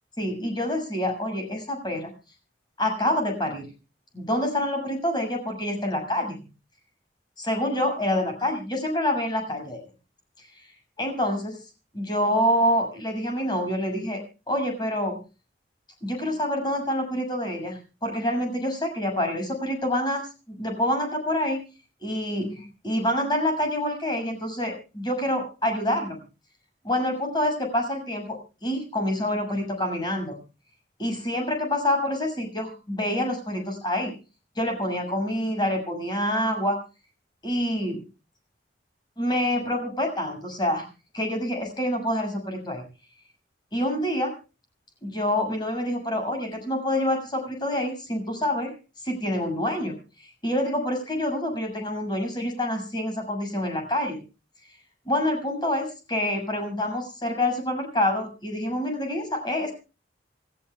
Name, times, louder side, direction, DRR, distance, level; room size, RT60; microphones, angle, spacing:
voice 1, 0.2-2.1 2.8-3.7 4.1-6.4 7.4-9.8 11.0-11.6 11.9-14.2 14.5-15.2 16.0-21.6 22.0-26.2 26.8-30.4 31.0-34.1 34.6-36.8 37.4-38.0 39.2-40.8 41.1-42.8 43.7-44.3 45.0-48.7 49.0-50.0 50.4-54.2 55.1-59.7, left 1 dB, 25° left, 3 dB, 7.0 m, -27 dB
28.5 x 14.0 x 2.3 m, 0.33 s
head